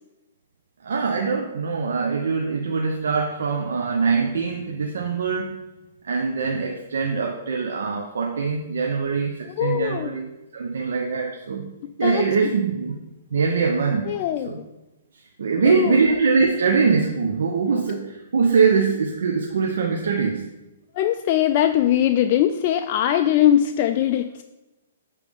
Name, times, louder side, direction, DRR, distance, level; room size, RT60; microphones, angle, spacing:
voice 1, 0.8-5.5 6.0-10.3 10.5-11.7 12.0-12.9 13.3-14.1 14.4-14.6 15.4-20.5, right 5 dB, 80° right, 1 dB, 0.8 m, -22 dB
voice 2, 9.6-10.2 12.0-12.2 14.1-14.5 15.6-16.0 20.9-24.4, left 11 dB, 40° left, 7 dB, 0.3 m, -21 dB
8.5 x 3.4 x 5.1 m, 1.0 s
hypercardioid pair, 145°, 0 cm